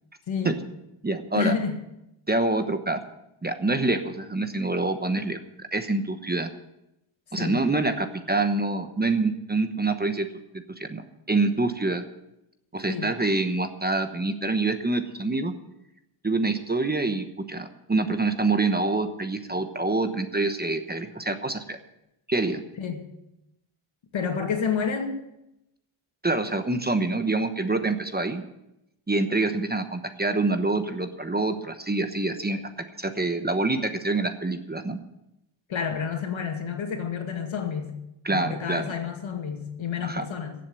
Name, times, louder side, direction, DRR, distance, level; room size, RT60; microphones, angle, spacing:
voice 1, 0.3-0.6 1.3-1.8 7.4-7.6 12.9-13.1 22.8-23.0 24.1-25.2 35.7-37.9 38.3-40.6, left 6 dB, 70° left, 4 dB, 2.2 m, -29 dB
voice 2, 1.0-1.5 2.3-3.0 3.4-6.5 7.3-10.3 10.8-12.0 12.7-15.5 16.2-21.8 22.3-22.6 26.2-28.4 29.1-32.6 33.0-35.0 38.2-38.9 40.0-40.3, right 3 dB, 20° right, 8 dB, 1.0 m, -26 dB
16.0 x 7.7 x 7.7 m, 0.88 s
wide cardioid pair, 110°, 49 cm